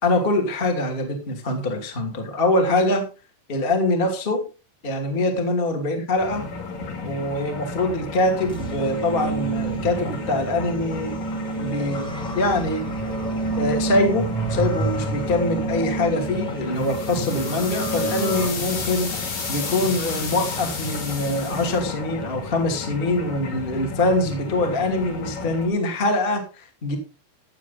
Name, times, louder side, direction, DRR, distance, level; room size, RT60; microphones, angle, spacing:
voice 1, 0.0-3.0 3.5-4.5 4.8-6.4 7.0-11.2 11.6-13.0 13.6-27.0, left 2 dB, 20° left, 3 dB, 1.8 m, -24 dB
sound 1, 6.2-25.7, left 3 dB, 50° left, 3.4 m, -34 dB
sound 2, 8.5-18.5, right 3 dB, ahead, 1.5 m, -29 dB
sound 3, 16.8-21.8, left 4 dB, 65° left, 5.4 m, -32 dB
15.0 x 8.3 x 4.0 m, 0.32 s
omnidirectional pair, 5.0 m